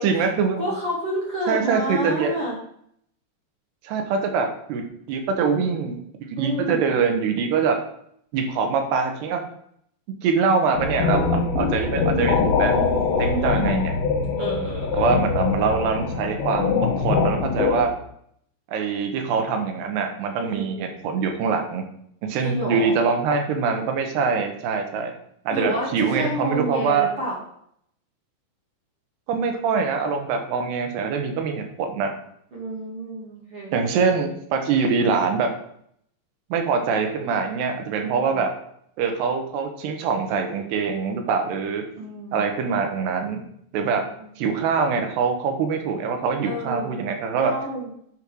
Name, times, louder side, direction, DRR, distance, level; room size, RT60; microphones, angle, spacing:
voice 1, 0.0-0.6 1.5-2.3 3.8-6.0 6.3-7.8 8.3-9.4 10.2-12.8 13.3-14.0 14.9-17.9 18.7-21.8 22.2-25.1 25.5-27.1 29.3-32.1 33.7-35.5 36.5-38.5 39.0-41.9 42.3-43.4 43.7-44.0 44.4-47.5, right 5 dB, 75° right, 5 dB, 3.1 m, -24 dB
voice 2, 0.6-2.5 6.4-6.9 12.6-13.6 14.4-15.2 20.4-20.9 22.4-23.0 25.5-27.4 32.5-33.8 38.0-38.4 42.0-42.4 43.7-44.3 46.4-47.0 47.4-47.9, right 1 dB, 40° right, -4 dB, 2.4 m, -30 dB
sound 1, 10.8-17.8, left 5 dB, 65° left, 2.6 m, -23 dB
8.9 x 5.4 x 6.3 m, 0.69 s
omnidirectional pair, 5.0 m